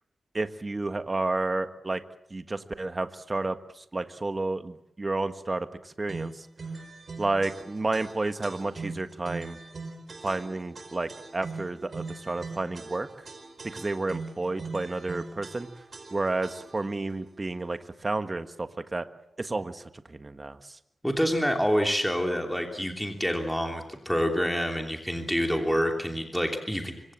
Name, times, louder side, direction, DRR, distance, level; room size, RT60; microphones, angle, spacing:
voice 1, 0.3-2.0 2.3-6.5 7.2-9.6 10.2-13.1 13.6-15.7 16.1-19.0 19.4-19.8 20.1-20.6, right 2 dB, 25° right, 9 dB, 1.5 m, -31 dB
sound 1, 6.1-16.9, right 3 dB, 45° right, 4.9 m, -41 dB
voice 2, 21.0-27.0, equal, ahead, 3 dB, 3.0 m, -27 dB
25.0 x 24.5 x 7.5 m, 0.77 s
wide cardioid pair, 125°, 0 cm